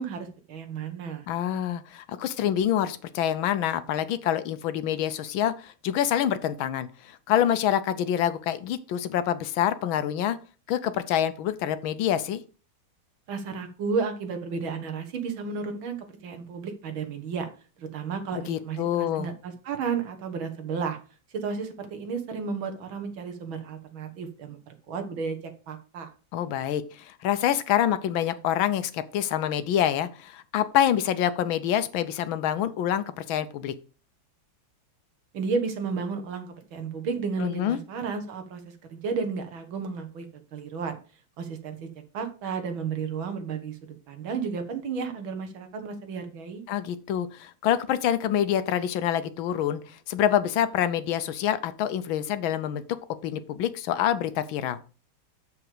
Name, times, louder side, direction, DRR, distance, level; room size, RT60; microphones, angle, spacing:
voice 1, 0.0-1.3 13.3-16.0 16.2-17.5 17.8-21.0 21.3-25.4 25.7-26.1 35.3-40.3 40.5-41.0 41.4-41.9 42.1-46.6, right 5 dB, 70° right, 7 dB, 2.2 m, -32 dB
voice 2, 1.3-10.4 10.7-12.4 18.3-19.3 26.3-33.7 37.4-37.8 46.7-52.8 53.2-54.8, left 10 dB, 75° left, 13 dB, 1.5 m, -26 dB
7.0 x 6.8 x 4.9 m, 0.35 s
omnidirectional pair, 2.3 m